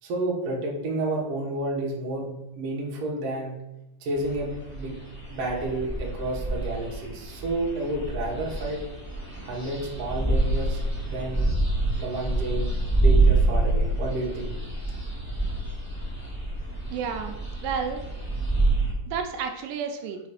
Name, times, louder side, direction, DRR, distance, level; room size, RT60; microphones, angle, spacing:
voice 1, 0.0-3.5 4.0-5.0 5.3-8.8 9.4-11.5 12.0-12.7 13.0-14.5, right 2 dB, 60° right, -2 dB, 2.0 m, -30 dB
sound 1, 4.1-18.9, right 2 dB, 15° right, 0.6 m, -27 dB
voice 2, 16.9-18.0 19.1-20.2, right 6 dB, 85° right, 5 dB, 2.2 m, -31 dB
5.0 x 4.1 x 4.9 m, 0.89 s
omnidirectional pair, 3.7 m